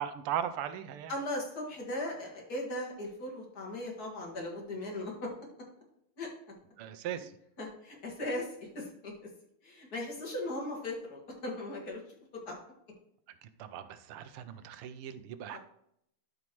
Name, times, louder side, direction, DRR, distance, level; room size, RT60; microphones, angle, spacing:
voice 1, 0.0-1.1 6.8-7.3 13.4-15.6, right 9 dB, 85° right, 11 dB, 1.6 m, -38 dB
voice 2, 1.1-5.3 6.2-6.3 7.6-9.3 9.6-12.2 12.5-12.6 15.5-15.6, left 1 dB, 45° left, -2 dB, 2.3 m, -38 dB
13.0 x 5.2 x 3.1 m, 0.73 s
omnidirectional pair, 2.4 m